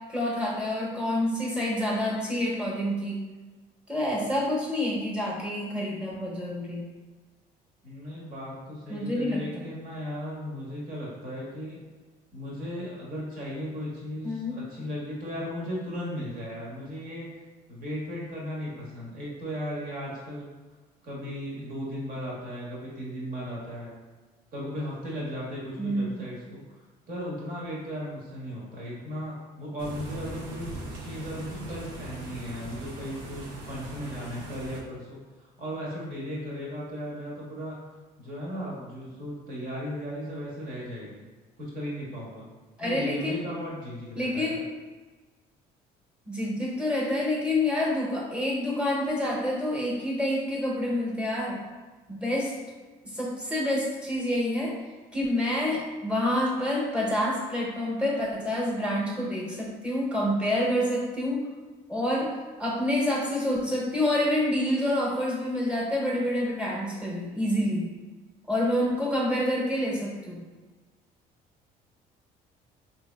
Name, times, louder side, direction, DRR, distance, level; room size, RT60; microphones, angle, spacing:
voice 1, 0.1-3.2 3.9-6.9 8.9-9.4 14.2-14.5 25.8-26.2 42.8-43.4 44.2-44.6 46.3-51.6 52.1-52.5 53.1-54.7 55.1-61.5 61.9-62.3 62.6-67.9 68.5-70.4, left 1 dB, 5° right, -5 dB, 1.0 m, -27 dB
voice 2, 7.8-11.8 12.3-17.3 17.7-20.5 21.0-23.9 24.5-26.8 27.1-30.7 31.0-37.8 38.2-41.2 41.6-42.4 42.8-44.6, equal, 55° right, -5 dB, 1.3 m, -36 dB
sound 1, 29.8-34.8, right 1 dB, 85° right, 0.7 m, -40 dB
3.2 x 2.8 x 2.3 m, 1.3 s
supercardioid pair, 90°, 18 cm